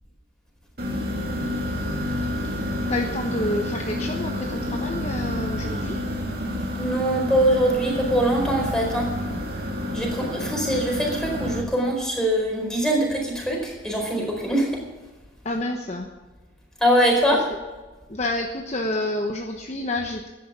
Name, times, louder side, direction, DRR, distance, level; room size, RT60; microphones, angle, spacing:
sound 1, 0.8-11.6, left 1 dB, 55° right, 2.9 m, -29 dB
voice 1, 2.9-6.1 15.4-16.1 17.3-17.4 18.1-20.3, left 1 dB, 35° left, 2 dB, 1.1 m, -29 dB
voice 2, 6.8-9.1 9.9-14.8 16.8-17.4, right 1 dB, 5° left, -1 dB, 4.6 m, -22 dB
13.5 x 10.5 x 7.2 m, 1.2 s
head